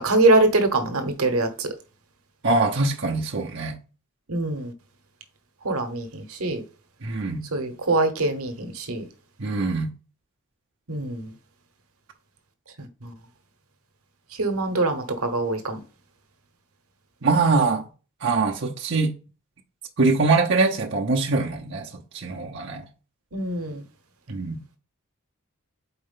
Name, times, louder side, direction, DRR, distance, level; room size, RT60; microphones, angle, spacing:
voice 1, 0.0-1.7 4.3-4.7 5.6-6.6 7.5-9.1 10.9-11.3 13.0-13.1 14.4-15.8 23.3-23.8, right 2 dB, 85° right, 1.1 m, -23 dB
voice 2, 2.4-3.8 7.0-7.4 9.4-9.9 17.2-17.8 18.2-19.1 20.0-21.9 22.1-22.8 24.3-24.6, right 3 dB, 55° right, 0.9 m, -23 dB
4.4 x 4.3 x 5.6 m
head